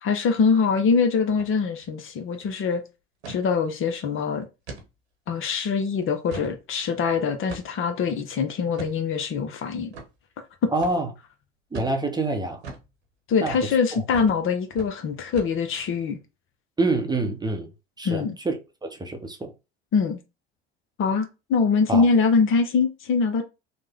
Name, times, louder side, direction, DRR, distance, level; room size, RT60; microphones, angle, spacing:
voice 1, 0.0-2.8 3.3-4.5 5.3-9.9 10.6-10.7 13.3-16.2 18.0-18.4 19.9-20.2 21.0-23.4, left 5 dB, 40° left, 0.7 m, -23 dB
sound 1, 1.3-1.5 1.8-1.9 2.3-2.5 3.2-3.4 3.9-4.0 4.7-4.9 5.4-5.5 6.0-6.6 7.5-7.9 8.7-9.0 9.9-10.1 10.8-11.0 11.7-12.0 12.6-12.9 13.5-13.7 14.1-14.4 14.7-14.9 15.4-15.8, right 3 dB, 85° right, 1.2 m, -39 dB
voice 2, 10.7-11.1 11.7-12.6 13.4-13.5 13.9-14.0 16.8-17.7 18.0-19.5 21.9-22.1, right 2 dB, 15° right, 0.8 m, -26 dB
3.2 x 2.1 x 3.5 m
hypercardioid pair, 70°, 32 cm